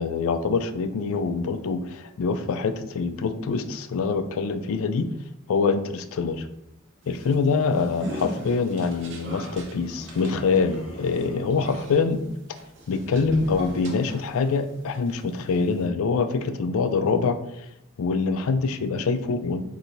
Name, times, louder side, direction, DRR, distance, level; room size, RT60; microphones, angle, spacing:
voice 1, 0.0-5.1 5.5-6.5 7.1-12.2 12.9-17.4 18.0-19.6, left 4 dB, 65° left, 10 dB, 0.4 m, -25 dB
sound 1, 7.0-14.6 14.9-15.9, right 1 dB, 55° right, 0.8 m, -39 dB
sound 2, 9.6-11.7, left 1 dB, 25° left, 0.8 m, -43 dB
3.9 x 2.7 x 4.4 m, 0.84 s
head